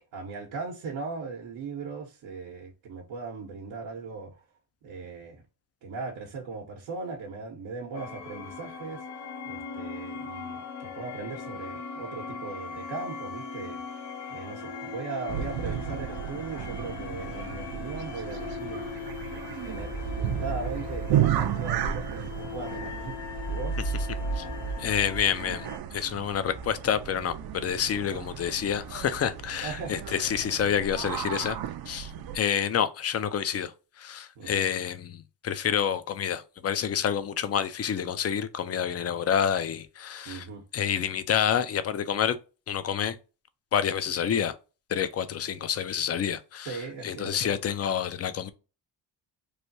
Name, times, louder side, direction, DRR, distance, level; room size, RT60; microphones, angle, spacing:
voice 1, 0.1-4.4 4.8-5.4 5.8-9.0 9.4-13.8 14.3-18.9 19.6-23.2 23.5-23.8 29.6-29.9 34.4-34.6 40.3-40.6 46.6-47.6, right 4 dB, 85° right, 0.9 m, -38 dB
sound 1, 7.9-25.8, left 1 dB, 80° left, 0.9 m, -37 dB
sound 2, 15.3-32.4, right 10 dB, 60° right, 0.5 m, -34 dB
voice 2, 24.8-31.6 31.9-40.5 40.7-42.4 42.7-43.2 43.7-44.5 44.9-48.5, left 8 dB, 35° left, 0.4 m, -28 dB
3.2 x 2.2 x 2.6 m
cardioid pair, 80°, 43 cm